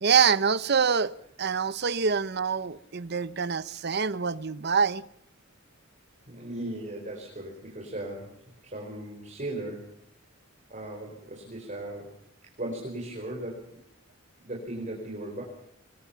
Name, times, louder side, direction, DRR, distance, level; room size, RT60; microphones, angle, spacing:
voice 1, 0.0-5.0, right 6 dB, 55° right, 0.8 m, -25 dB
voice 2, 6.3-8.3 8.6-9.9 10.7-12.1 12.4-13.8 14.4-15.4, right 1 dB, 40° right, 4.8 m, -37 dB
25.5 x 21.5 x 5.8 m
head